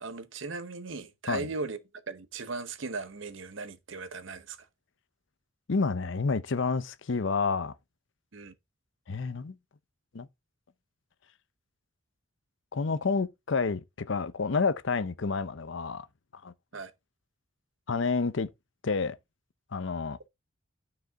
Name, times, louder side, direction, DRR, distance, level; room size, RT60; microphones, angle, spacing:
voice 1, 0.0-1.8 2.1-4.6 8.3-8.5 16.7-16.9, right 4 dB, 65° right, 0.8 m, -37 dB
voice 2, 5.7-7.7 9.1-9.6 10.1-10.3 12.7-16.1 16.4-16.5 17.9-18.5 18.8-19.2 19.7-20.2, left 4 dB, 65° left, 0.6 m, -29 dB
9.5 x 4.9 x 3.5 m
head